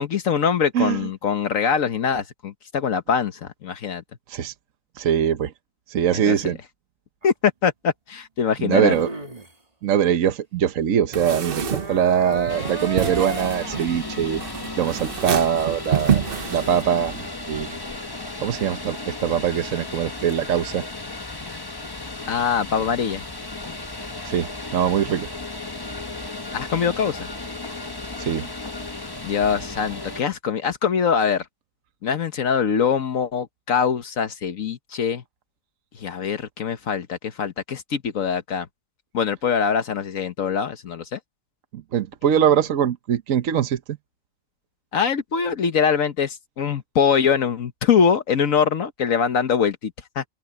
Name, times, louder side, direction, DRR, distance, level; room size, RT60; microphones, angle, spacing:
voice 1, 0.0-4.0 6.1-6.5 7.2-9.0 22.3-23.2 26.5-27.3 29.2-31.4 32.0-35.2 35.9-38.7 39.1-41.2 44.9-50.2, left 6 dB, 70° left, 1.4 m, -23 dB
voice 2, 5.0-5.5 5.9-6.6 8.6-9.1 9.8-14.4 14.8-16.2 16.5-17.1 17.5-17.8 18.4-20.8 24.2-25.3 28.2-28.5 41.7-44.0, right 9 dB, 70° right, 1.3 m, -22 dB
sound 1, 7.2-7.3 8.7-9.5 11.1-13.9 20.3-20.4, right 2 dB, 25° right, 2.4 m, -34 dB
sound 2, 11.1-17.3, right 8 dB, 45° right, 1.0 m, -28 dB
sound 3, 12.5-30.2, left 2 dB, 20° left, 1.0 m, -35 dB
open air
omnidirectional pair, 1.5 m